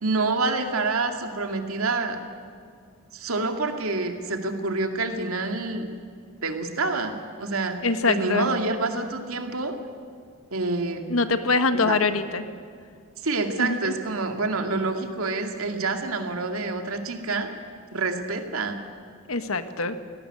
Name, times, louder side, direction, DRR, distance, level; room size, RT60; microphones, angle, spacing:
voice 1, 0.0-2.2 3.1-5.9 6.4-7.8 8.1-9.8 10.5-11.0 11.7-12.0 13.2-17.5 17.9-18.8, right 3 dB, 90° right, 5 dB, 2.4 m, -27 dB
voice 2, 7.8-8.5 11.1-12.4 13.6-13.8 19.3-20.0, left 3 dB, 75° left, 9 dB, 1.4 m, -23 dB
19.0 x 17.5 x 9.8 m, 2.2 s
head